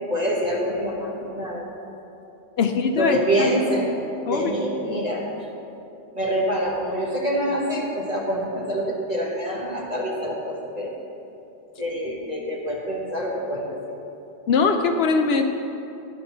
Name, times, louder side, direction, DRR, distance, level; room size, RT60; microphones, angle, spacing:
voice 1, 0.1-1.6 3.0-3.9 4.3-5.3 6.1-10.9 11.8-13.8, equal, 40° right, -4 dB, 1.5 m, -26 dB
voice 2, 2.6-3.5 4.3-4.5 14.5-15.4, left 5 dB, 70° left, 6 dB, 0.8 m, -21 dB
10.5 x 4.3 x 6.6 m, 2.9 s
omnidirectional pair, 1.1 m